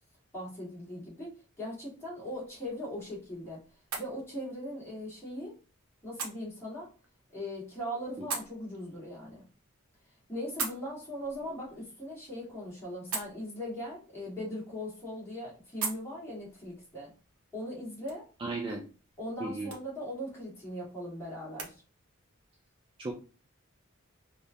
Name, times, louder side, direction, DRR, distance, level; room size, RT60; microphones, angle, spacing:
voice 1, 0.3-1.3 1.6-3.6 4.0-5.5 6.0-6.9 7.3-9.4 10.3-17.1 17.5-18.2 19.2-21.8, equal, 10° left, -6 dB, 1.5 m, -39 dB
sound 1, 2.3-21.7, right 5 dB, 80° right, 0.9 m, -45 dB
voice 2, 18.4-18.8 19.4-19.7 23.0-23.1, right 3 dB, 25° right, 0 dB, 0.3 m, -35 dB
3.4 x 2.5 x 2.7 m, 0.35 s
head